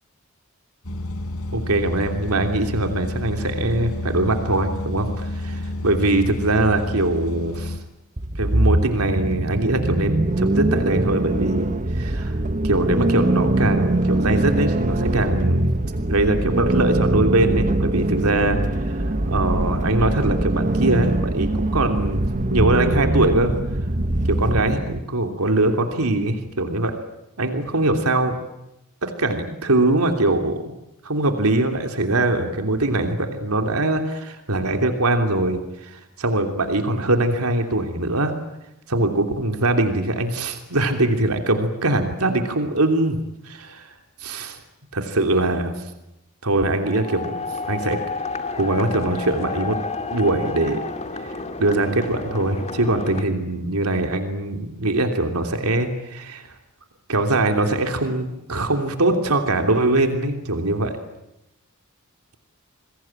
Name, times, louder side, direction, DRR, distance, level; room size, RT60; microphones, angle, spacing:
sound 1, 0.8-7.8, left 1 dB, 75° left, 3.7 m, -30 dB
voice 1, 1.5-7.8 8.4-12.3 12.6-15.7 16.1-22.2 22.5-23.5 24.3-26.9 27.4-28.3 29.0-30.7 31.0-38.3 38.9-43.2 43.4-44.6 44.9-45.7 46.4-48.0 48.6-49.8 50.1-50.8 51.2-56.5 57.1-60.9, right 2 dB, 80° right, 5 dB, 3.1 m, -22 dB
sound 2, 8.2-25.0, right 1 dB, 35° right, 1.1 m, -22 dB
sound 3, 46.8-53.2, left 4 dB, 30° left, 2.3 m, -31 dB
28.5 x 22.0 x 9.0 m, 0.90 s
head